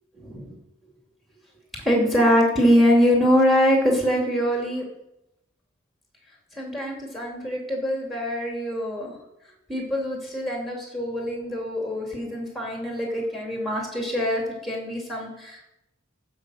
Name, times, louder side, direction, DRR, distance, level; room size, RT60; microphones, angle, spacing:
voice 1, 0.1-0.5 1.8-4.8 6.5-9.1 9.7-15.6, equal, ahead, 0 dB, 2.7 m, -23 dB
14.5 x 5.3 x 6.4 m, 0.84 s
head